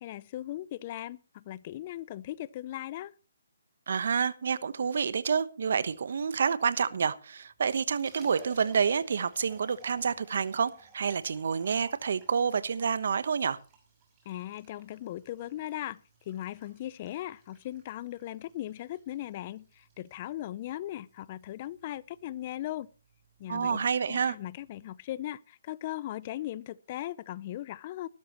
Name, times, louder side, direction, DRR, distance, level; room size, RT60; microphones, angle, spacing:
voice 1, 0.0-3.1 14.3-22.9 23.4-28.1, left 14 dB, 35° left, 0.6 m, -38 dB
voice 2, 3.9-13.6 23.5-24.4, right 6 dB, 60° right, 1.1 m, -28 dB
Liquid, 7.5-24.9, right 5 dB, 20° right, 6.4 m, -56 dB
19.5 x 12.5 x 3.1 m
hypercardioid pair, 150°, 0 cm